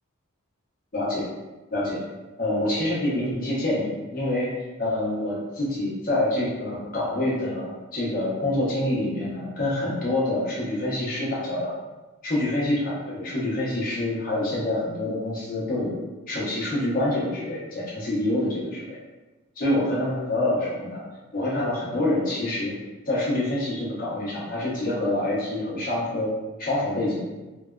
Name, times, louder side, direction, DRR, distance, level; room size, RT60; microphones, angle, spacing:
voice 1, 0.9-1.3 1.7-2.0 2.4-4.5 4.8-11.7 12.2-16.0 16.3-19.0 19.6-21.0 21.3-22.7 23.1-26.3 26.6-27.2, left 1 dB, 40° left, -7 dB, 0.8 m, -26 dB
3.2 x 2.2 x 2.3 m, 1.2 s
head